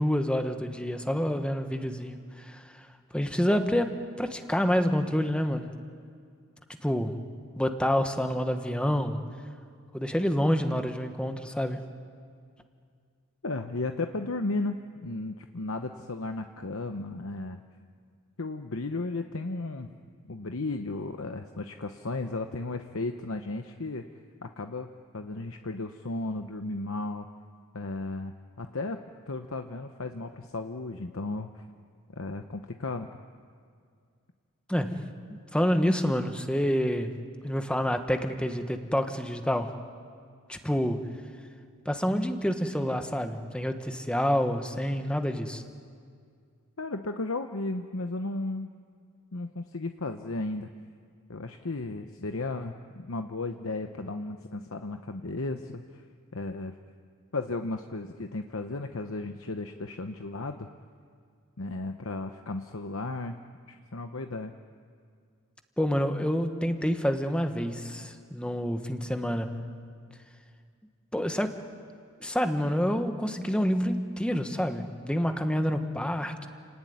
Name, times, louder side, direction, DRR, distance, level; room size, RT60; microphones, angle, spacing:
voice 1, 0.0-2.6 3.1-5.7 6.8-7.3 7.6-9.2 9.9-11.8 34.7-35.1 35.5-37.2 37.4-39.8 40.5-41.1 41.8-45.6 65.8-69.7 71.1-71.5 72.2-76.5, equal, 5° left, 6 dB, 1.2 m, -28 dB
voice 2, 13.4-17.6 18.4-19.9 20.3-24.0 24.4-24.9 25.1-27.3 27.7-29.0 29.3-31.6 32.1-33.1 46.8-48.7 49.3-50.7 51.3-56.0 56.3-56.8 57.3-60.7 61.6-63.4 63.7-64.5 70.1-70.2, left 2 dB, 65° left, 6 dB, 0.9 m, -34 dB
29.0 x 18.5 x 9.5 m, 2.2 s
head